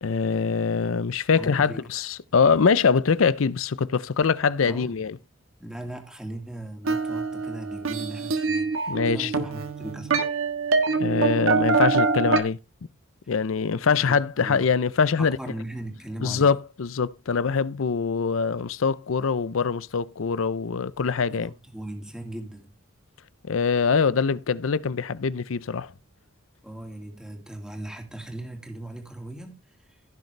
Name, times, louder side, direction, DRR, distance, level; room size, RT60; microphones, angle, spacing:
voice 1, 0.0-5.2 8.9-9.3 11.0-12.6 13.3-15.4 16.2-21.5 23.4-25.9, left 5 dB, 80° left, 0.5 m, -23 dB
voice 2, 1.3-1.9 4.7-5.0 5.6-10.4 13.2-13.3 13.9-14.7 15.2-16.5 21.3-22.7 26.6-30.0, right 1 dB, 5° right, 2.1 m, -39 dB
sound 1, 6.8-12.4, right 4 dB, 90° right, 1.4 m, -25 dB
16.0 x 6.6 x 3.3 m
head